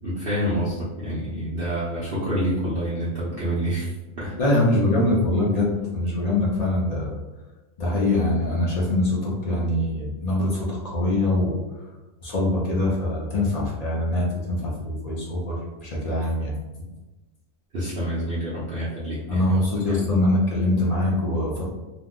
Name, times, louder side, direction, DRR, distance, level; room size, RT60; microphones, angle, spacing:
voice 1, 0.0-4.4 17.7-19.4 19.7-20.2, equal, 50° right, -9 dB, 0.7 m, -28 dB
voice 2, 4.4-7.2 7.8-11.5 12.2-16.5 19.3-21.7, left 1 dB, 50° left, -4 dB, 0.4 m, -23 dB
2.9 x 2.0 x 3.6 m, 1.1 s
omnidirectional pair, 1.5 m